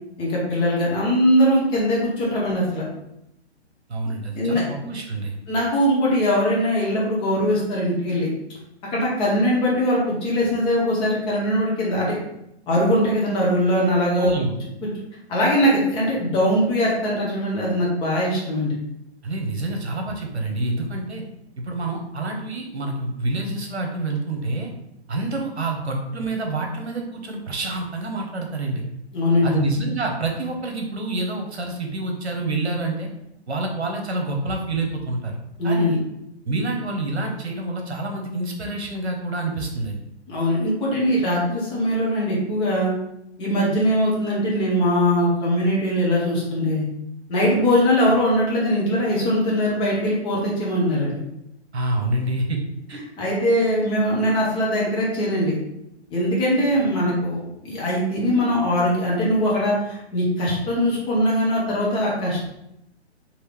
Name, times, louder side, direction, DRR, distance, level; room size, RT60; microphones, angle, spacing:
voice 1, 0.2-2.8 4.3-4.6 5.5-8.3 8.9-12.2 12.7-14.3 15.3-18.7 29.1-29.6 35.6-35.9 40.3-42.9 43.4-46.8 47.3-51.2 53.2-55.6 56.1-62.5, equal, 15° left, -5 dB, 0.9 m, -21 dB
voice 2, 3.9-5.4 14.2-14.6 19.2-21.2 21.6-24.7 25.1-28.8 29.4-33.1 33.5-35.4 35.6-36.0 36.4-40.0 51.7-52.6 52.9-53.0, right 2 dB, 70° right, 2 dB, 1.1 m, -27 dB
4.7 x 2.9 x 3.3 m, 0.82 s
figure-of-eight pair, 125°, 34 cm